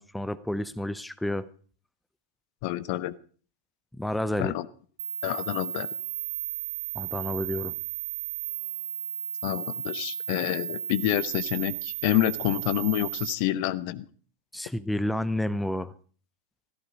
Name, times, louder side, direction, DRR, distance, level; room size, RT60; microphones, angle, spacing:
voice 1, 0.0-1.5 4.0-4.5 6.9-7.8 14.5-15.9, left 1 dB, 5° left, 15 dB, 0.8 m, -30 dB
voice 2, 2.6-3.1 4.4-4.7 5.2-5.9 9.4-14.0, left 15 dB, 45° left, 17 dB, 0.9 m, -28 dB
sound 1, 5.0-13.3, right 10 dB, 60° right, 1.5 m, -34 dB
16.0 x 15.0 x 4.9 m, 0.43 s
figure-of-eight pair, 90°, 0 cm